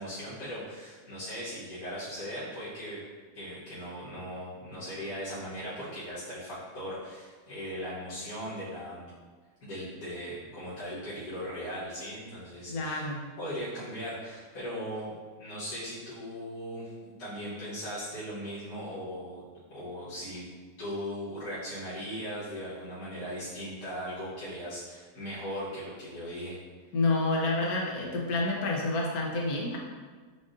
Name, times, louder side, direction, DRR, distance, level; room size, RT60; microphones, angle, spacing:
voice 1, 0.0-3.0 3.3-9.1 9.6-13.1 13.4-19.4 19.7-20.4 20.8-26.6, equal, 50° left, -12 dB, 1.6 m, -38 dB
voice 2, 12.7-13.3 26.9-29.8, left 2 dB, 65° left, -2 dB, 1.2 m, -29 dB
7.2 x 2.4 x 2.6 m, 1.5 s
omnidirectional pair, 1.8 m